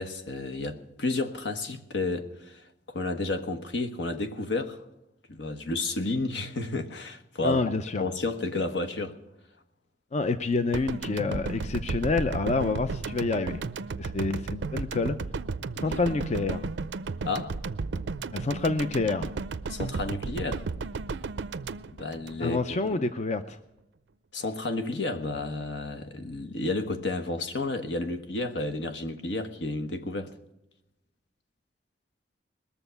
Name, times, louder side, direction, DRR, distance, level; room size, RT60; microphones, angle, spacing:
voice 1, 0.0-2.6 2.9-4.8 5.3-7.6 8.0-9.1 15.8-16.0 17.2-17.5 17.9-18.1 19.7-20.7 22.0-22.6 24.3-30.3, left 2 dB, 75° left, 1.2 m, -31 dB
voice 2, 7.4-8.0 10.1-13.6 14.0-15.2 15.8-16.7 18.3-19.3 22.4-23.6, left 3 dB, 40° left, 0.5 m, -28 dB
sound 1, 10.7-22.9, right 4 dB, 80° right, 0.5 m, -34 dB
21.0 x 7.1 x 6.8 m
head